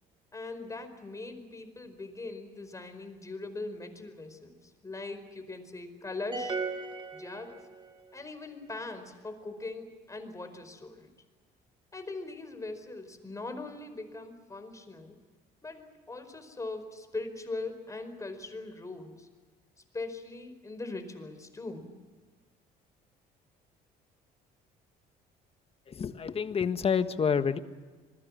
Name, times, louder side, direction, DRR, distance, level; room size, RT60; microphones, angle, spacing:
voice 1, 0.3-6.6 7.1-7.7 8.1-11.1 11.9-15.2 15.6-19.3 19.9-21.9, left 3 dB, 20° left, 8 dB, 4.8 m, -41 dB
sound 1, 6.3-8.0, right 4 dB, 25° right, 2.7 m, -36 dB
voice 2, 25.9-27.6, left 6 dB, 35° left, 10 dB, 1.6 m, -28 dB
27.0 x 21.5 x 7.5 m, 1.4 s
cardioid pair, 110°, 17 cm